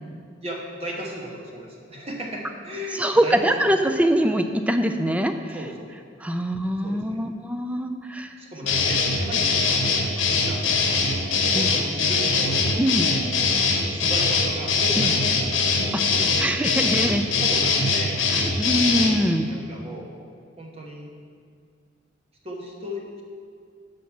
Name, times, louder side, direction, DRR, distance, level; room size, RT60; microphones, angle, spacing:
voice 1, 0.4-3.5 5.5-6.0 6.8-7.2 8.4-12.6 13.4-13.6 13.9-15.4 15.8-16.3 16.8-17.0 17.4-18.2 19.5-20.1 20.6-21.1 22.4-23.2, equal, 30° right, -1 dB, 1.2 m, -36 dB
voice 2, 3.0-5.6 6.2-8.3 11.5-11.8 12.8-13.1 15.0-15.1 16.4-17.2 18.3-19.5, equal, 5° right, 7 dB, 0.4 m, -23 dB
sound 1, 8.7-19.2, left 4 dB, 75° left, 1.0 m, -22 dB
7.0 x 5.1 x 6.0 m, 2.2 s
head